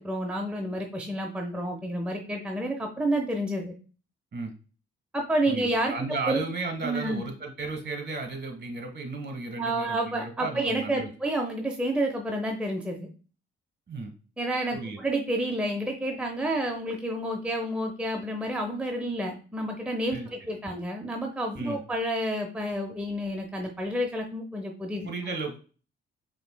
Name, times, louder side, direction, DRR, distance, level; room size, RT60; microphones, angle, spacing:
voice 1, 0.0-3.7 5.1-5.9 6.3-6.4 6.8-7.2 9.6-13.1 14.4-25.1, right 1 dB, 5° right, 2 dB, 0.8 m, -29 dB
voice 2, 5.5-11.1 13.9-14.1 14.7-15.0 20.1-20.3 21.5-21.8 25.0-25.6, right 3 dB, 35° right, 4 dB, 1.5 m, -34 dB
5.1 x 3.0 x 2.2 m, 0.37 s
hypercardioid pair, 50°, 29 cm